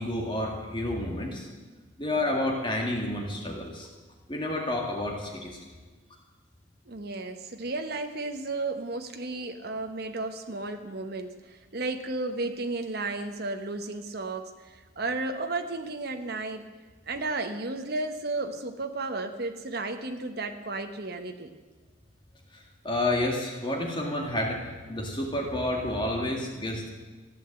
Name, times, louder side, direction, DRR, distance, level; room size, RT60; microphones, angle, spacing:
voice 1, 0.0-1.5 2.0-3.9 4.3-5.6 22.5-24.6 24.9-26.9, left 1 dB, 25° left, 0 dB, 2.0 m, -30 dB
voice 2, 6.9-16.6 17.1-21.5, right 2 dB, 55° right, 5 dB, 1.0 m, -33 dB
15.0 x 9.0 x 7.7 m, 1.3 s
head